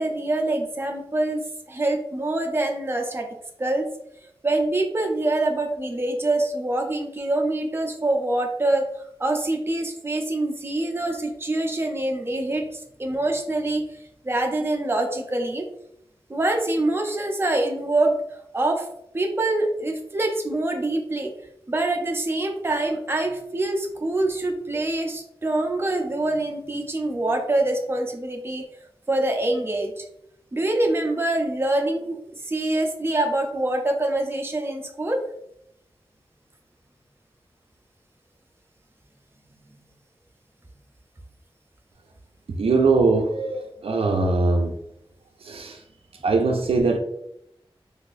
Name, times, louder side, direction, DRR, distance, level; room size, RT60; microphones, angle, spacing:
voice 1, 0.0-3.3 3.6-3.9 4.4-8.9 9.2-14.0 14.2-15.7 16.3-18.2 18.5-18.9 19.1-21.3 21.7-28.7 29.1-30.0 30.5-35.2, right 2 dB, 25° right, 0.6 m, -25 dB
voice 2, 42.6-44.8 45.4-45.8 46.2-47.0, right 3 dB, 90° right, 0.4 m, -21 dB
3.9 x 2.5 x 2.6 m
wide cardioid pair, 70°, 10 cm